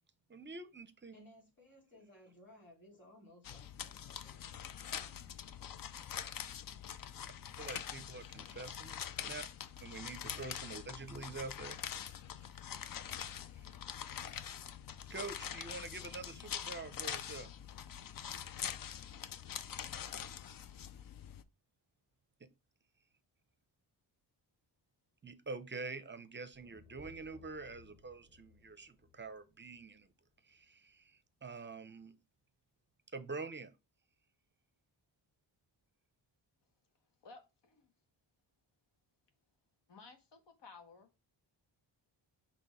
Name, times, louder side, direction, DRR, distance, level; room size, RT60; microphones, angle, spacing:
voice 1, 0.3-1.1 7.6-9.5 9.8-11.8 14.2-14.4 15.1-17.5 22.4-22.5 25.2-30.1 30.4-32.1 33.1-33.7, right 3 dB, 25° right, 0.6 m, -46 dB
voice 2, 1.1-4.6 5.0-5.5, left 1 dB, 25° left, 3.2 m, -62 dB
sound 1, 3.4-21.4, left 9 dB, 50° left, 0.5 m, -44 dB
sound 2, 26.5-30.7, left 3 dB, 10° left, 0.8 m, -63 dB
voice 3, 37.2-37.9 39.9-41.1, left 4 dB, 70° left, 1.5 m, -56 dB
5.9 x 3.0 x 5.6 m
wide cardioid pair, 140°, 45 cm